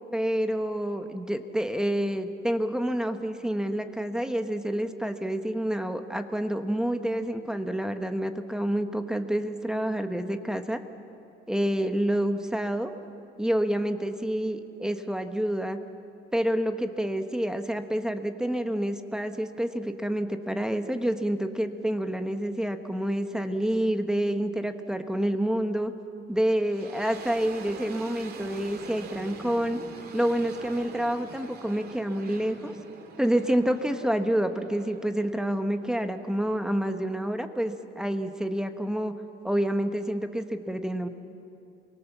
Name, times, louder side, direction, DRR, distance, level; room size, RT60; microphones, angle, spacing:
voice 1, 0.1-10.8 11.5-12.9 13.4-15.8 16.3-25.9 26.3-29.8 30.1-32.7 33.2-39.2 39.4-41.1, right 1 dB, 5° right, 7 dB, 1.2 m, -28 dB
sound 1, 26.3-37.3, right 5 dB, 50° right, 2.6 m, -45 dB
28.5 x 24.0 x 7.3 m, 2.8 s
cardioid pair, 125°, 21 cm